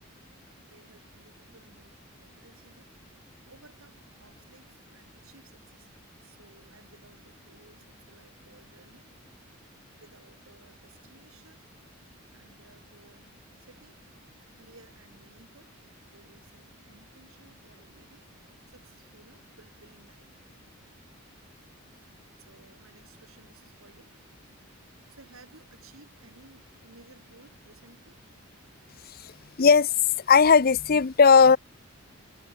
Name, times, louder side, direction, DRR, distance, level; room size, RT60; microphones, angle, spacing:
voice 1, 0.6-2.9 3.5-5.9 6.2-9.1 10.0-11.7 12.3-14.0 14.6-20.4 21.5-24.1 24.8-28.2 28.5-28.6, right 2 dB, 80° right, 6.4 m, -58 dB
voice 2, 29.6-29.9 30.3-31.6, left 5 dB, 45° left, 0.6 m, -17 dB
head